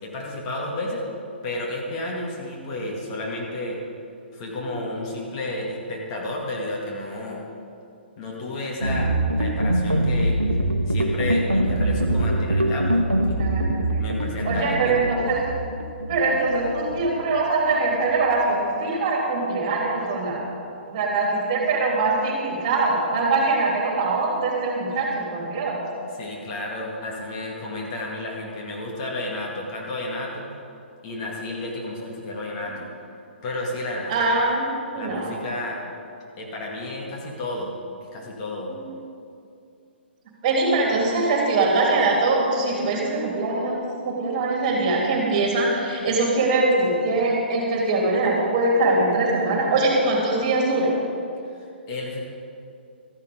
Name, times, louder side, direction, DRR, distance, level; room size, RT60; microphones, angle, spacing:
voice 1, 0.0-1.1 1.4-3.8 4.3-7.4 8.2-9.1 9.4-10.4 10.9-13.4 14.0-15.1 26.2-30.5 31.0-32.9 33.4-34.2 35.0-35.8 36.4-37.7 38.0-38.7 51.5-52.3, left 2 dB, 30° left, -2 dB, 2.1 m, -32 dB
sound 1, 8.8-18.3, right 1 dB, 90° right, 0.9 m, -24 dB
voice 2, 13.4-14.0 14.4-15.4 16.1-20.4 20.8-25.9 34.1-35.3 40.4-43.8 44.0-50.9, right 3 dB, 35° right, -1 dB, 3.0 m, -22 dB
13.5 x 11.5 x 5.1 m, 2.5 s
figure-of-eight pair, 125°, 6 cm